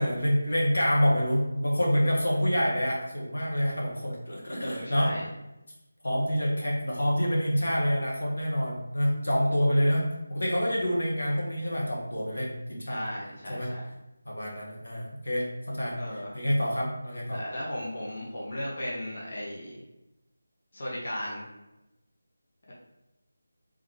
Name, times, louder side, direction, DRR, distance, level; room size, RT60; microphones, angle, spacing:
voice 1, 0.0-5.1 6.0-13.0 13.5-13.7 14.2-17.4, equal, 75° left, -3 dB, 1.1 m, -27 dB
voice 2, 4.6-5.2 12.8-13.9 15.9-16.3 17.3-19.8 20.7-21.4, left 1 dB, 50° left, -5 dB, 1.0 m, -35 dB
3.6 x 3.3 x 3.2 m, 0.96 s
figure-of-eight pair, 160°, 0 cm